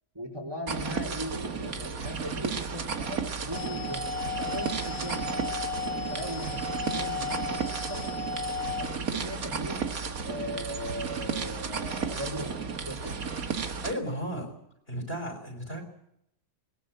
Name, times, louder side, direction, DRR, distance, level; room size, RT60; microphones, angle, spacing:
voice 1, 0.1-5.4 6.1-8.1 8.7-9.9 10.3-12.5 12.8-13.2, equal, 10° right, 1 dB, 3.8 m, -38 dB
sound 1, 0.7-13.9, right 5 dB, 50° right, 2.1 m, -33 dB
sound 2, 3.5-8.9, left 4 dB, 90° left, 3.4 m, -35 dB
voice 2, 13.8-14.5 14.9-15.8, equal, 30° left, 5 dB, 5.8 m, -34 dB
21.0 x 21.0 x 7.8 m, 0.74 s
omnidirectional pair, 2.0 m